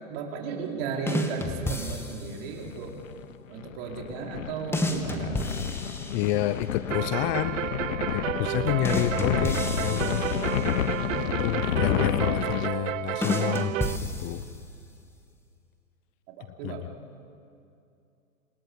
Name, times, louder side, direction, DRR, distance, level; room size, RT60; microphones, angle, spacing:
voice 1, 0.1-2.9 3.5-5.5 10.6-11.5 16.6-16.9, right 5 dB, 45° right, 0 dB, 4.9 m, -35 dB
sound 1, 1.1-2.5 4.7-6.7 8.8-11.0 13.2-14.8, left 1 dB, 5° left, 2.0 m, -32 dB
sound 2, 2.7-12.7, left 10 dB, 65° left, 1.2 m, -30 dB
voice 2, 6.1-7.6 8.1-10.2 11.2-13.7 14.0-14.4 16.6-16.9, left 14 dB, 30° left, 13 dB, 0.7 m, -29 dB
sound 3, 6.9-14.0, right 13 dB, 65° right, 0.6 m, -32 dB
28.0 x 27.0 x 7.3 m, 2.5 s
hypercardioid pair, 125°, 42 cm